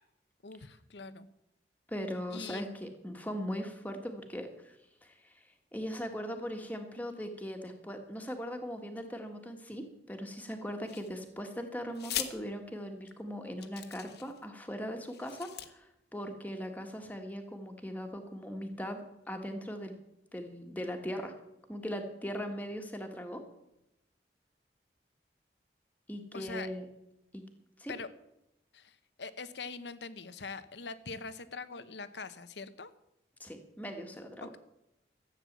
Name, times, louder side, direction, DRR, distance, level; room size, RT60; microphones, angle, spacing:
voice 1, 0.4-1.3 2.3-2.8 26.3-26.7 27.9-28.1 28.7-32.9 34.4-34.6, left 4 dB, 85° left, 13 dB, 1.0 m, -43 dB
voice 2, 1.9-4.7 5.0-5.5 5.7-19.9 20.3-21.3 21.7-23.4 26.1-26.9 27.3-27.4 27.8-27.9 33.4-34.5, equal, 10° left, 4 dB, 1.7 m, -39 dB
sound 1, 10.9-11.4 11.9-12.3 13.1-13.2 13.6-14.4 15.0-15.7, left 10 dB, 70° left, 1.2 m, -40 dB
14.0 x 8.8 x 7.4 m, 0.88 s
head